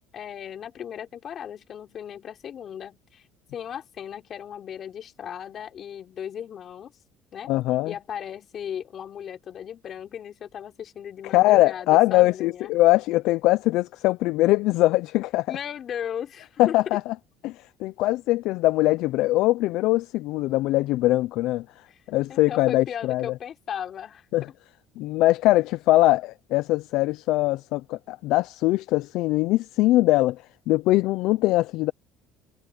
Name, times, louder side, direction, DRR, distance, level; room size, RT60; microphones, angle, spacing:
voice 1, 0.1-3.2 3.5-6.9 7.3-7.5 7.8-12.7 15.5-16.7 22.3-24.3, left 9 dB, 45° left, 4.5 m, -36 dB
voice 2, 7.5-7.9 11.2-15.5 16.6-17.1 17.4-23.3 24.3-24.5 25.0-31.9, left 18 dB, 70° left, 0.5 m, -22 dB
cardioid pair, 115°, 0 cm